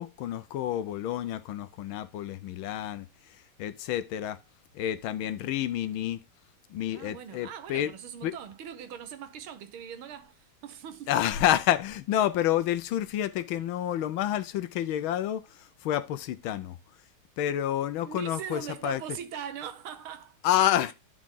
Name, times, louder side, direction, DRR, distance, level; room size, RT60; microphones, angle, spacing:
voice 1, 0.0-4.4 4.7-6.2 6.7-7.9 8.2-8.3 11.1-16.8 17.4-19.0 20.4-20.9, left 11 dB, 75° left, 1.4 m, -29 dB
voice 2, 6.9-11.1 18.0-20.4, right 9 dB, 75° right, 1.8 m, -41 dB
11.0 x 4.8 x 3.7 m
omnidirectional pair, 2.4 m